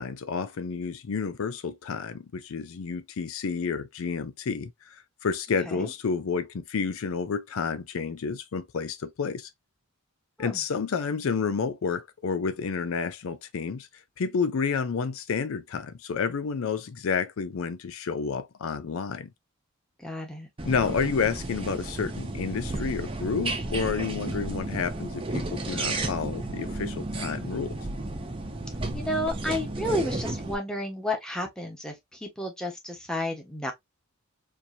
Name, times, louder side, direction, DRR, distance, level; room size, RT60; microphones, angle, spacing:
voice 1, 0.0-9.5 10.4-13.9 14.2-19.3 20.6-27.7, left 5 dB, 75° left, 0.5 m, -30 dB
voice 2, 20.0-20.5 28.9-33.7, left 1 dB, 5° left, 1.1 m, -32 dB
sound 1, 20.6-30.5, right 2 dB, 25° right, 0.7 m, -33 dB
4.5 x 2.7 x 2.6 m
head